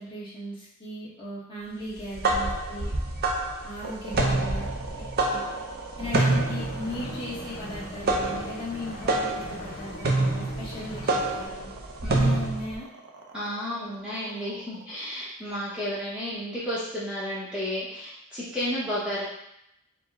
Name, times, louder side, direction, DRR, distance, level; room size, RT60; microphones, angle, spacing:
voice 1, 0.0-2.9 3.6-4.7 5.0-5.4 6.0-11.7 12.1-12.9, left 1 dB, 25° left, -8 dB, 1.4 m, -37 dB
sound 1, 1.9-12.7, right 2 dB, 45° right, 0.6 m, -27 dB
sound 2, 3.8-16.1, right 4 dB, 90° right, 0.6 m, -43 dB
sound 3, 6.0-11.5, left 1 dB, 65° left, 0.8 m, -41 dB
voice 2, 13.3-19.2, equal, 5° right, -10 dB, 0.9 m, -32 dB
4.8 x 2.2 x 3.7 m, 0.78 s
head